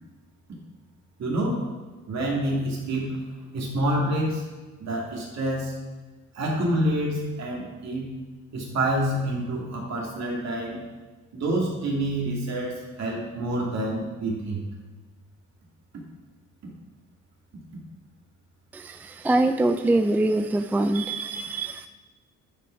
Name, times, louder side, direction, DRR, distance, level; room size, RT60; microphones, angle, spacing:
voice 1, 1.2-1.7 2.1-3.1 3.5-4.4 4.8-5.7 6.3-8.1 8.5-10.8 11.3-14.6, right 1 dB, 60° right, -2 dB, 2.6 m, -27 dB
voice 2, 18.7-21.9, right 2 dB, 5° right, 9 dB, 0.3 m, -24 dB
10.5 x 5.0 x 4.6 m, 1.3 s
cardioid pair, 90°, 30 cm